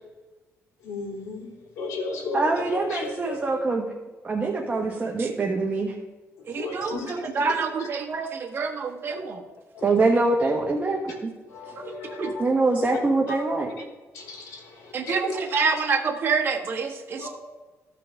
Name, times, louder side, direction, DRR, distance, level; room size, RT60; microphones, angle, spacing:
voice 1, 0.8-1.5 1.8-3.5 6.5-7.9 9.1-9.2 9.7-9.8 11.5-12.5 14.1-15.3 17.2-17.3, left 3 dB, 90° left, -1 dB, 3.2 m, -35 dB
voice 2, 2.3-3.9 4.2-5.9 9.8-11.3 12.4-13.7, right 3 dB, 25° right, -1 dB, 1.4 m, -24 dB
voice 3, 6.5-9.4 12.2-12.3 14.9-17.2, right 5 dB, 45° right, 1 dB, 1.5 m, -27 dB
15.0 x 5.8 x 3.7 m, 1.2 s
cardioid pair, 110°, 5 cm